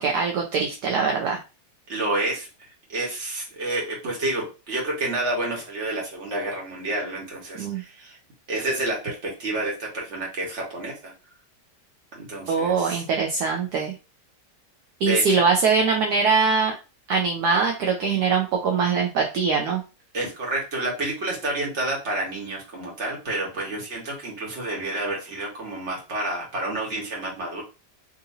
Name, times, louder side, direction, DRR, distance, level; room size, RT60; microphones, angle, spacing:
voice 1, 0.0-1.4 7.6-7.8 12.5-13.9 15.0-16.7 17.1-19.8, right 5 dB, 70° right, 1 dB, 1.1 m, -22 dB
voice 2, 1.9-2.5 2.9-8.2 8.5-11.1 12.1-13.0 15.0-15.4 20.1-27.6, right 2 dB, 45° right, -2 dB, 1.5 m, -29 dB
3.7 x 2.7 x 2.6 m, 0.30 s
omnidirectional pair, 1.9 m